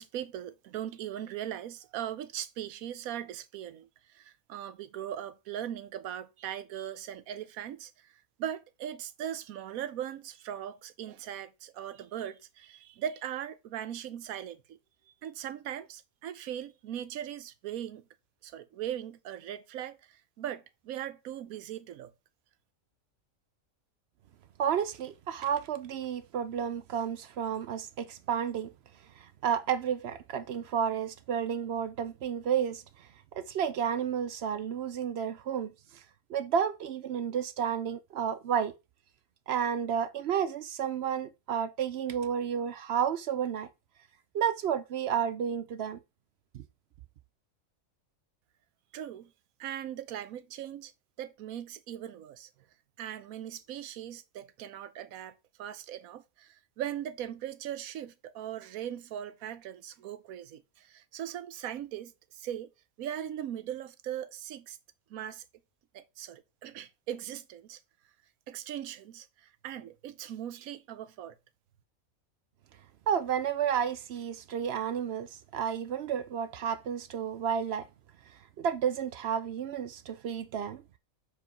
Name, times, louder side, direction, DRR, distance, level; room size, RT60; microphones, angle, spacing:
voice 1, 0.0-3.9 4.1-7.9 8.4-14.8 15.2-18.0 18.4-20.0 20.4-22.1 48.9-49.3 49.6-50.9 51.2-52.5 53.0-62.7 63.0-64.8 65.1-65.4 65.9-67.8 68.5-71.4, right 10 dB, 90° right, 1.1 m, -39 dB
voice 2, 24.6-28.7 29.2-32.8 33.4-35.7 36.3-38.7 39.5-43.7 44.3-46.0 46.5-46.6 73.1-77.9 78.6-80.8, right 8 dB, 65° right, 0.7 m, -31 dB
4.8 x 4.7 x 5.7 m
omnidirectional pair, 1.5 m